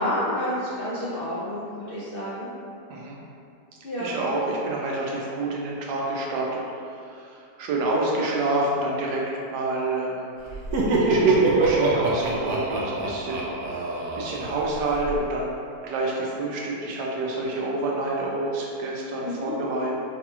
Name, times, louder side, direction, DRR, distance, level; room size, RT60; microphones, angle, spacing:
voice 1, 0.0-2.5 3.8-4.2 19.2-19.5, left 1 dB, 75° left, -10 dB, 0.5 m, -29 dB
voice 2, 2.9-3.2 4.0-6.6 7.0-10.3 11.0-15.6 15.8-19.9, right 2 dB, 90° right, -2 dB, 1.3 m, -28 dB
Laughter, 10.5-15.2, right 3 dB, 70° right, 1.0 m, -24 dB
4.9 x 2.9 x 2.3 m, 2.5 s
omnidirectional pair, 1.8 m